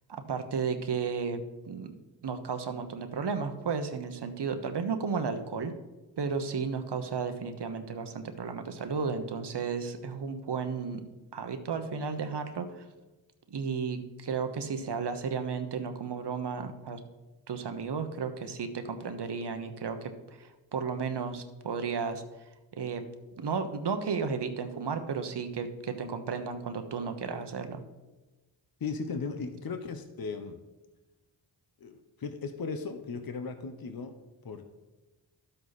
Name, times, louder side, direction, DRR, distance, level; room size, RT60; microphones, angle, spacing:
voice 1, 0.3-1.4 1.7-1.9 2.2-5.7 6.2-11.0 11.3-12.8 13.5-17.0 17.5-20.1 20.4-22.2 22.8-23.0 23.4-27.8, right 5 dB, 60° right, 8 dB, 1.1 m, -33 dB
voice 2, 28.8-30.6 31.8-34.1 34.4-34.6, left 4 dB, 50° left, 8 dB, 0.9 m, -37 dB
12.0 x 7.9 x 4.1 m, 1.1 s
cardioid pair, 75°, 46 cm